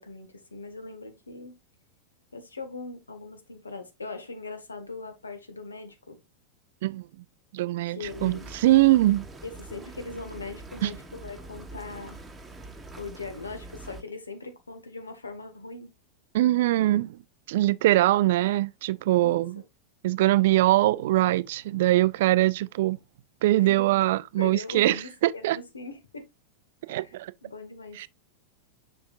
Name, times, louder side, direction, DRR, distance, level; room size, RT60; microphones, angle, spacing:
voice 1, 0.0-1.6 2.3-6.2 7.9-8.5 9.4-12.2 13.0-15.9 19.2-19.4 23.6-23.9 24.4-26.3 26.9-27.1 27.4-28.0, left 3 dB, 75° left, 1.2 m, -40 dB
voice 2, 7.5-9.3 10.8-10.9 16.3-17.2 17.5-19.6 20.0-23.0 23.4-25.6 26.9-27.3 28.0-28.1, right 16 dB, 55° right, 0.3 m, -22 dB
sound 1, 8.0-14.0, right 2 dB, 10° right, 1.0 m, -44 dB
6.8 x 5.9 x 2.4 m
figure-of-eight pair, 90°, 0 cm